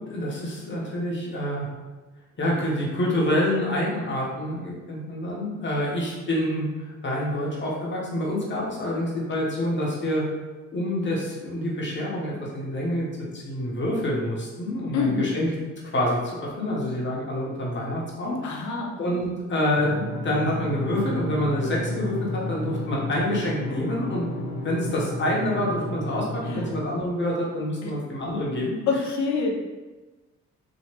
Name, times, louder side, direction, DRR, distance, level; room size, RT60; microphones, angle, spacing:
voice 1, 0.1-1.7 2.4-10.2 10.7-13.0 13.3-15.5 15.9-24.2 24.6-28.7, left 1 dB, 40° left, -4 dB, 1.0 m, -27 dB
voice 2, 14.9-15.3 18.4-19.0 26.5-26.7 27.8-27.9 28.5-29.5, left 5 dB, 65° left, 0 dB, 0.7 m, -26 dB
sound 1, 19.8-26.8, left 1 dB, 15° left, 0.9 m, -32 dB
3.0 x 2.7 x 2.9 m, 1.2 s
cardioid pair, 90°, 30 cm